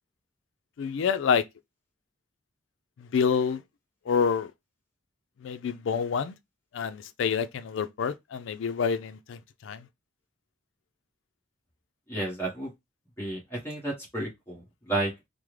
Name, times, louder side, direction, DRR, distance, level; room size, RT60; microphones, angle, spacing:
voice 1, 0.8-1.4 3.0-3.6 4.1-4.5 5.4-6.3 6.7-9.8, left 6 dB, 75° left, 0.4 m, -27 dB
voice 2, 12.1-12.7 13.2-14.6 14.9-15.1, right 2 dB, 15° left, 1.2 m, -31 dB
3.5 x 2.0 x 3.1 m
head